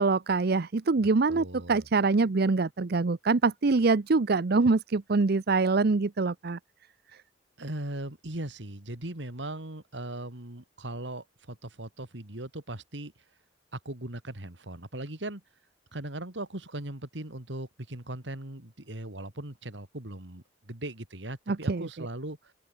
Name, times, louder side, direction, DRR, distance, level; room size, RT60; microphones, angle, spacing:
voice 1, 0.0-6.6 21.5-21.9, right 3 dB, 60° right, 0.7 m, -24 dB
voice 2, 1.0-1.8 7.6-13.1 13.7-15.4 15.9-22.5, right 1 dB, 80° right, 3.1 m, -39 dB
open air
head